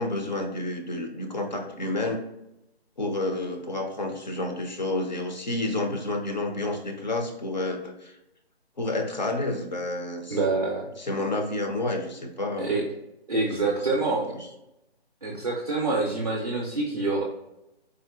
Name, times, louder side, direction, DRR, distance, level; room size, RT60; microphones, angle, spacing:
voice 1, 0.0-2.2 3.0-8.2 8.8-10.4 11.0-12.7 13.5-13.7 14.1-14.4, left 2 dB, 45° left, 3 dB, 0.4 m, -30 dB
voice 2, 10.3-10.9 12.6-12.9 13.3-14.3 15.2-17.2, right 3 dB, 40° right, -3 dB, 0.4 m, -26 dB
3.6 x 2.5 x 2.2 m, 0.90 s
figure-of-eight pair, 165°, 32 cm